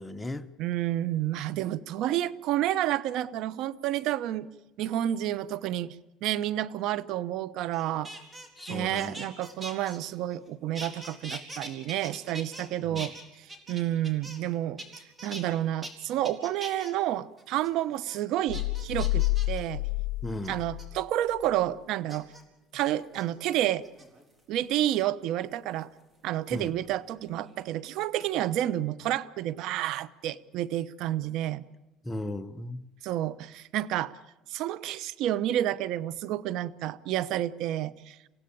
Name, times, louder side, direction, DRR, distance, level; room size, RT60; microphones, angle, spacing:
voice 1, 0.0-0.5 8.6-9.2 12.9-13.1 20.2-20.6 26.5-26.7 32.0-32.8, left 1 dB, 10° left, 1.1 m, -36 dB
voice 2, 0.6-4.5 4.8-6.0 6.2-8.1 8.7-14.8 15.2-19.8 20.5-22.3 22.7-23.8 24.5-25.9 26.2-31.6 33.0-34.1 34.5-38.3, right 13 dB, 65° right, 1.0 m, -30 dB
sound 1, 7.7-10.5 10.7-12.7 12.9-14.5 14.8-15.4 15.8-15.9 16.2-16.9 17.4-17.7 18.1-18.2 18.5-19.6 20.4-20.8 22.1-22.4 23.0-23.2 23.8-24.4 25.8-27.0 27.3-27.7, right 1 dB, 20° right, 4.1 m, -43 dB
sound 2, 18.5-21.0 21.4-21.5, left 19 dB, 85° left, 0.7 m, -29 dB
28.5 x 16.5 x 8.8 m
cardioid pair, 115°, 0 cm